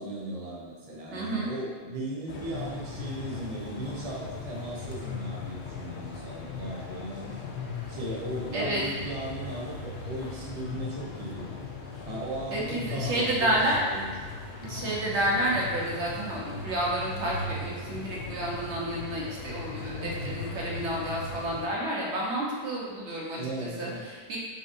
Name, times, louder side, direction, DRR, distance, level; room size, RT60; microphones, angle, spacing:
voice 1, 0.0-7.4 7.9-11.5 12.0-14.1 14.6-14.9 19.8-20.5 23.3-24.1, right 1 dB, 35° right, -5 dB, 0.8 m, -37 dB
voice 2, 1.1-1.5 8.5-8.8 12.5-13.8 14.6-24.4, right 1 dB, 85° right, -5 dB, 1.2 m, -30 dB
sound 1, 2.3-21.7, left 3 dB, 80° left, 0.9 m, -38 dB
5.5 x 2.6 x 2.5 m, 1.4 s
omnidirectional pair, 1.1 m